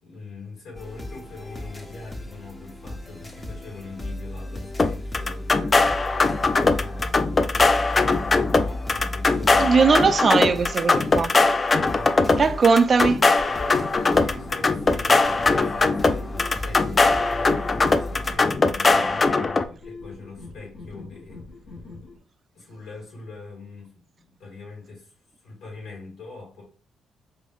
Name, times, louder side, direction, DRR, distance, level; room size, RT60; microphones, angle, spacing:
voice 1, 0.0-6.0 6.7-9.8 11.8-12.5 13.5-21.4 22.5-25.1 25.4-26.6, left 3 dB, 80° left, 2.1 m, -42 dB
sound 1, 0.7-18.3, left 1 dB, 15° left, 0.7 m, -36 dB
sound 2, 4.8-19.6, left 3 dB, 30° left, 0.3 m, -21 dB
voice 2, 9.6-11.3 12.4-13.2, right 5 dB, 40° right, 0.4 m, -19 dB
sound 3, 13.3-22.2, left 3 dB, 65° left, 1.9 m, -42 dB
5.1 x 2.6 x 2.6 m
cardioid pair, 90°, 0 cm